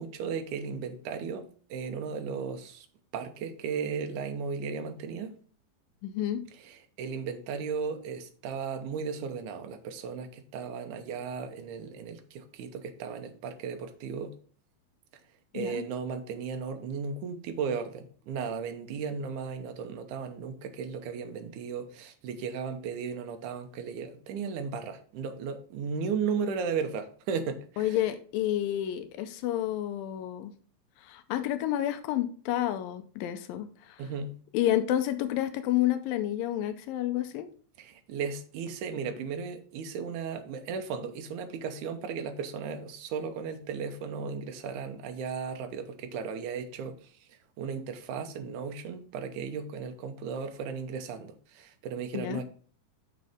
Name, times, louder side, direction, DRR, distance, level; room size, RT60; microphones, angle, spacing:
voice 1, 0.0-2.9 3.1-5.3 6.7-14.3 15.5-28.0 34.0-34.4 37.8-47.1 47.6-52.4, right 6 dB, 70° right, 7 dB, 2.2 m, -35 dB
voice 2, 6.0-6.4 15.5-15.8 27.8-30.5 31.0-34.0 34.5-37.5 52.1-52.4, left 12 dB, 85° left, 9 dB, 2.4 m, -30 dB
6.6 x 6.5 x 3.5 m, 0.43 s
omnidirectional pair, 3.9 m